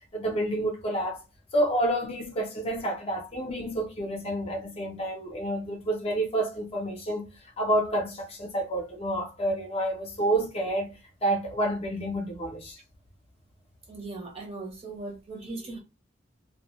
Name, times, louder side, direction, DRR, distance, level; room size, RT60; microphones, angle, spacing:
voice 1, 0.1-1.2 1.5-7.3 7.6-10.9 11.2-12.8, right 1 dB, 30° left, 0.6 m, -29 dB
voice 2, 13.9-15.8, right 3 dB, 30° right, 0.7 m, -38 dB
2.2 x 2.1 x 2.9 m
head